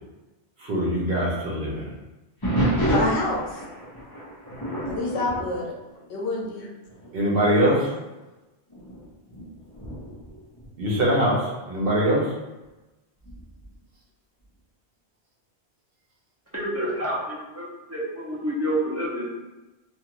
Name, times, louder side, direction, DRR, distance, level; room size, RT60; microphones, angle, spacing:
voice 1, 0.6-1.9 7.1-7.9 10.8-12.2, equal, 60° right, -4 dB, 0.9 m, -22 dB
sound 1, 2.4-6.6 6.9-7.2 7.9-8.0 8.7-11.4 13.2-13.7, right 1 dB, 20° left, 0.8 m, -29 dB
voice 2, 2.9-3.6 4.9-5.7 6.1-6.7 7.6-8.0, left 2 dB, 80° left, -2 dB, 0.9 m, -28 dB
voice 3, 16.5-19.4, equal, 20° right, -8 dB, 0.5 m, -28 dB
2.5 x 2.4 x 2.9 m, 1.1 s
omnidirectional pair, 1.1 m